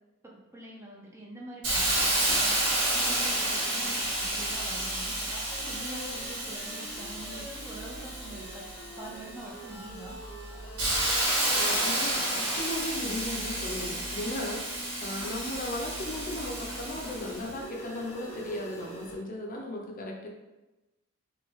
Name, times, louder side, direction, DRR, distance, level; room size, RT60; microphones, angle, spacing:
voice 1, 0.2-8.7 9.0-10.2, right 2 dB, 10° right, -3 dB, 0.5 m, -45 dB
Hiss, 1.6-9.2 9.7-17.5, right 1 dB, 70° right, 1.4 m, -30 dB
sound 1, 5.5-19.1, equal, 10° left, 0.9 m, -45 dB
voice 2, 11.5-20.3, left 1 dB, 40° left, 0 dB, 0.6 m, -36 dB
3.5 x 3.4 x 3.5 m, 1.1 s
head